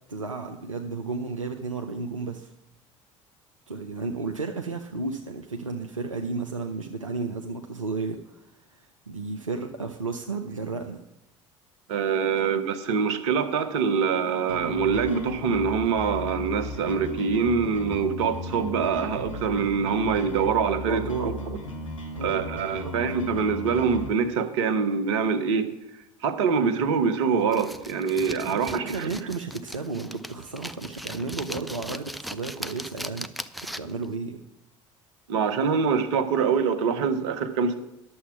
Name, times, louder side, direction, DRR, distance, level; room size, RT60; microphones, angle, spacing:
voice 1, 0.1-2.5 3.7-11.0 12.5-12.6 20.9-21.3 22.2-22.5 22.8-22.9 28.5-33.3 33.8-34.4, right 4 dB, 90° right, 3 dB, 0.6 m, -33 dB
voice 2, 11.9-21.3 22.2-25.7 26.2-29.1 35.3-37.8, right 6 dB, 65° right, 10 dB, 1.1 m, -25 dB
sound 1, 14.5-24.1, left 2 dB, 85° left, 1.3 m, -36 dB
sound 2, 27.5-34.0, equal, ahead, 0.5 m, -39 dB
11.0 x 7.1 x 5.8 m, 0.87 s
figure-of-eight pair, 60°, 16 cm